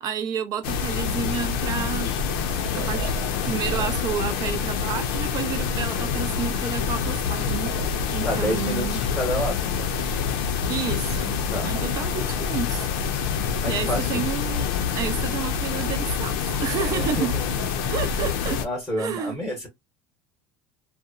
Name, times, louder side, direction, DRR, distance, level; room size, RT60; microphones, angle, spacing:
voice 1, 0.0-2.1 2.8-3.1 3.4-7.7 8.1-9.0 10.7-12.9 13.7-17.3 17.9-18.6 19.0-19.4, right 7 dB, 35° right, 0.5 m, -30 dB
sound 1, 0.6-18.7, left 6 dB, 85° left, 0.5 m, -26 dB
sound 2, 1.2-18.1, right 5 dB, 70° right, 1.1 m, -43 dB
voice 2, 8.2-9.9 11.5-11.7 13.6-14.3 16.9-17.5 18.6-19.7, equal, 5° left, 0.9 m, -29 dB
2.8 x 2.1 x 2.4 m
cardioid pair, 160°, 11 cm